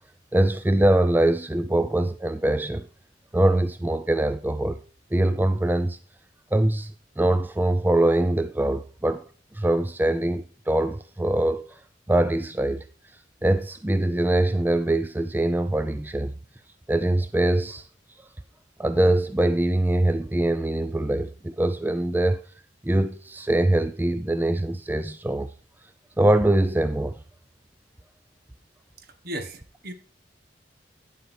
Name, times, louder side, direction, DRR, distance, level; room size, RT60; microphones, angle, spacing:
voice 1, 0.3-2.9 3.3-4.8 5.1-6.0 6.5-9.2 9.5-11.7 12.1-12.8 13.4-16.3 16.9-17.8 18.8-22.4 22.8-25.5 26.2-27.1, right 1 dB, 10° right, 0.4 m, -23 dB
voice 2, 29.0-29.9, equal, 55° right, 1.5 m, -36 dB
10.0 x 7.8 x 4.4 m
head